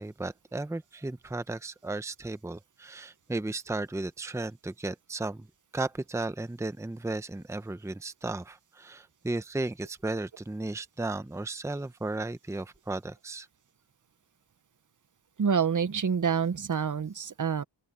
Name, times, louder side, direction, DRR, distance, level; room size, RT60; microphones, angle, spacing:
voice 1, 0.0-5.5 5.7-13.5, right 2 dB, 5° right, 0.7 m, -35 dB
voice 2, 15.4-17.6, right 6 dB, 40° right, 0.8 m, -27 dB
open air
wide cardioid pair, 110°, 47 cm